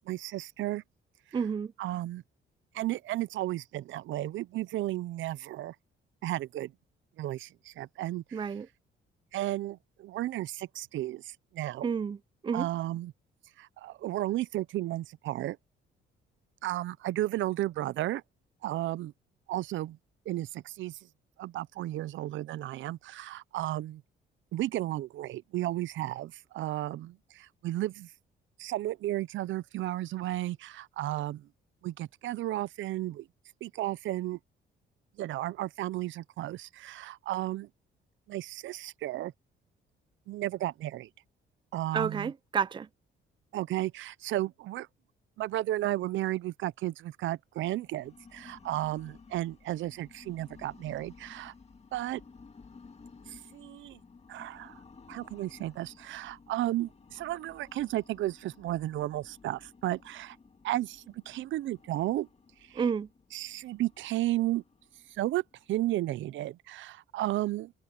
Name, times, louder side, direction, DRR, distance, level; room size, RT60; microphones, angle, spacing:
voice 1, 0.1-0.8 1.8-2.2 2.7-5.7 6.2-6.7 7.2-8.4 9.3-11.9 12.5-13.1 13.6-15.6 16.6-18.2 18.6-19.1 19.5-20.0 20.3-21.0 21.4-24.0 24.5-28.1 28.6-31.4 31.8-33.2 33.6-34.4 35.2-37.7 38.3-39.3 40.3-41.1 41.7-42.3 43.5-44.9 45.4-51.5 51.9-52.2 53.5-54.0 54.3-54.8 55.1-60.4 60.6-62.3 63.3-64.6 65.2-65.4 65.7-67.7, right 15 dB, 75° right, 0.6 m, -33 dB
voice 2, 1.3-1.7 8.3-8.7 11.8-12.2 12.4-12.7 41.9-42.9 62.8-63.1, right 6 dB, 25° right, 0.4 m, -30 dB
sound 1, 47.6-66.4, left 4 dB, 30° left, 2.1 m, -56 dB
cardioid pair, 90°, 20 cm